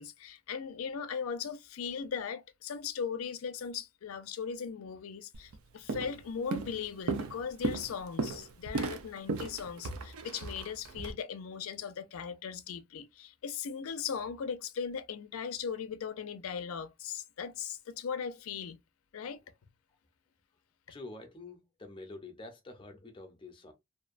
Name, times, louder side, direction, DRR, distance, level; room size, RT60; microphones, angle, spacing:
voice 1, 0.0-18.8 19.1-19.4, left 6 dB, 85° left, 0.4 m, -38 dB
Walk footsteps, 5.3-5.6 5.9-6.2 6.5-11.1, right 3 dB, 85° right, 0.4 m, -35 dB
voice 2, 20.9-23.7, left 2 dB, 25° left, 0.5 m, -47 dB
2.6 x 2.1 x 2.4 m
head